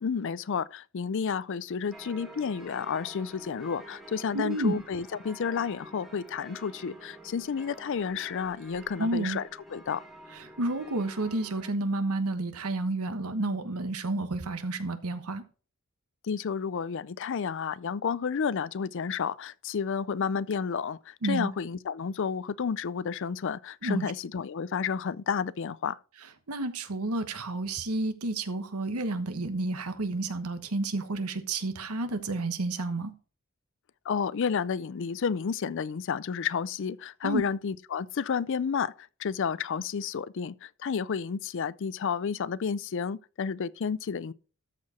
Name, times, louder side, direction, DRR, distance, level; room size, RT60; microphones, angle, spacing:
voice 1, 0.0-9.4 9.7-10.0 16.2-26.0 34.1-44.3, left 6 dB, 60° left, 0.4 m, -31 dB
sound 1, 1.9-11.7, right 1 dB, ahead, 1.7 m, -49 dB
voice 2, 4.3-4.8 9.0-9.4 10.3-15.4 21.2-21.5 23.8-24.0 26.5-33.1 37.2-37.4, right 2 dB, 90° right, 1.2 m, -30 dB
13.0 x 4.7 x 4.3 m
head